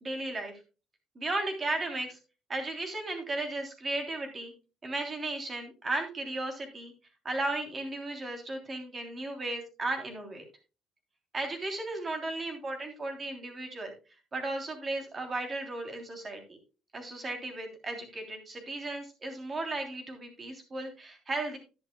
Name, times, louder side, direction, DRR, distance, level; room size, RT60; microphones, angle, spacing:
voice 1, 0.0-0.5 1.1-2.2 2.5-4.5 4.8-6.9 7.2-10.4 11.3-13.9 14.3-16.6 16.9-21.6, right 2 dB, 25° right, 4 dB, 3.2 m, -35 dB
12.0 x 10.5 x 2.2 m, 0.31 s
cardioid pair, 125°, 0 cm